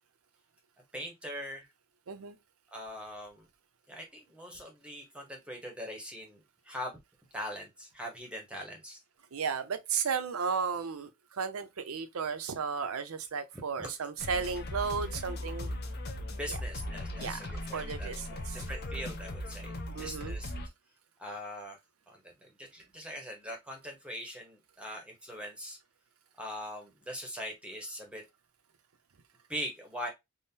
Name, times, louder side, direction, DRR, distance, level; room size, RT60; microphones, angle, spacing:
voice 1, 0.9-1.7 2.7-3.4 3.9-6.4 6.6-7.0 7.3-9.0 13.8-13.9 16.3-18.1 18.7-20.5 21.2-21.8 22.1-25.8 26.4-28.2 29.5-30.1, equal, 5° right, 0.7 m, -41 dB
voice 2, 9.3-15.7 16.5-16.6 17.2-17.5 17.7-18.6 19.9-20.4, right 6 dB, 80° right, 0.5 m, -34 dB
sound 1, 14.2-20.7, left 1 dB, 45° left, 0.5 m, -38 dB
3.6 x 2.0 x 2.6 m
head